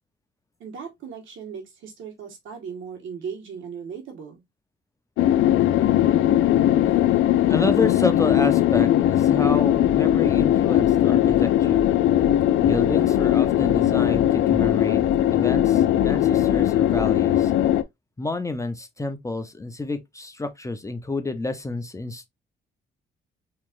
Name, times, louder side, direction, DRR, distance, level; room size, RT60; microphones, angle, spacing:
voice 1, 0.6-4.4, right 6 dB, 80° right, 1.6 m, -37 dB
sound 1, 5.2-17.8, left 12 dB, 90° left, 0.4 m, -19 dB
voice 2, 7.5-11.8 12.6-15.0 15.3-17.5 18.2-22.3, left 2 dB, 15° left, 0.7 m, -29 dB
sound 2, 9.8-14.8 15.0-17.3, left 1 dB, 35° left, 1.0 m, -36 dB
4.2 x 3.0 x 2.5 m
cardioid pair, 90°, 20 cm